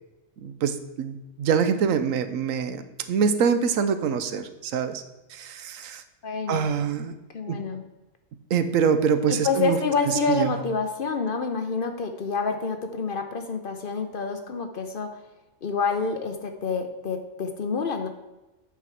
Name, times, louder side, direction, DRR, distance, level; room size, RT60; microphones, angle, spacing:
voice 1, 0.4-5.0 5.3-6.0 6.5-7.1 7.5-7.6 8.5-9.8 10.0-10.6, right 6 dB, 85° right, 10 dB, 1.1 m, -25 dB
voice 2, 6.2-6.7 7.3-7.8 9.3-15.1 15.6-18.1, left 4 dB, 50° left, 6 dB, 0.8 m, -28 dB
8.3 x 5.8 x 4.5 m, 1.0 s
omnidirectional pair, 1.4 m